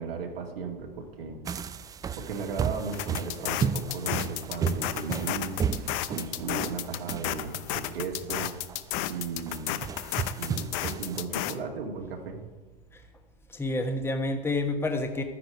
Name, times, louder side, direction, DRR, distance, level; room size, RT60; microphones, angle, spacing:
voice 1, 0.0-1.4 2.1-5.7 6.1-8.6 9.1-9.8 10.4-12.4, right 5 dB, 75° right, 1 dB, 2.2 m, -36 dB
sound 1, 1.5-11.2, right 7 dB, 15° right, 0.3 m, -34 dB
Motorcycle / Engine starting / Idling, 2.3-8.4, right 4 dB, 35° right, 1.1 m, -47 dB
sound 2, 2.9-11.5, left 15 dB, 50° left, 0.8 m, -33 dB
voice 2, 13.5-15.2, left 2 dB, 10° left, 5 dB, 1.2 m, -29 dB
12.0 x 9.8 x 4.7 m, 1.2 s
hypercardioid pair, 100°, 29 cm